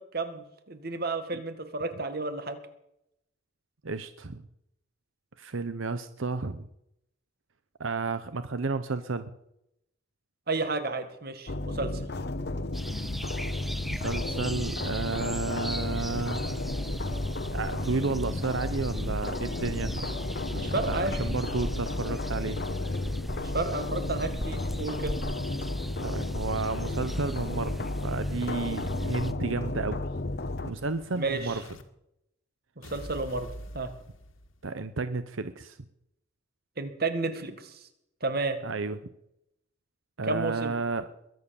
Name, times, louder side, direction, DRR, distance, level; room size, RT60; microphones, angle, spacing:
voice 1, 0.0-2.6 10.5-12.1 20.5-21.2 23.4-25.2 31.1-31.6 32.8-33.5 33.7-33.9 36.8-37.8 38.2-38.6 40.2-40.7, right 3 dB, 50° right, 9 dB, 1.9 m, -32 dB
voice 2, 3.8-4.4 5.4-6.7 7.8-9.3 13.9-16.7 17.5-20.2 20.6-22.6 26.0-30.0 30.6-31.6 34.6-35.8 38.6-39.0 40.2-41.1, right 3 dB, 85° right, 12 dB, 0.9 m, -32 dB
sound 1, 11.5-30.7, left 2 dB, 55° left, 0.9 m, -33 dB
sound 2, 12.7-29.3, equal, ahead, 0.5 m, -38 dB
Explosion, 29.4-31.8 32.8-34.8, equal, 85° left, 1.8 m, -47 dB
21.5 x 9.4 x 7.1 m, 0.80 s
head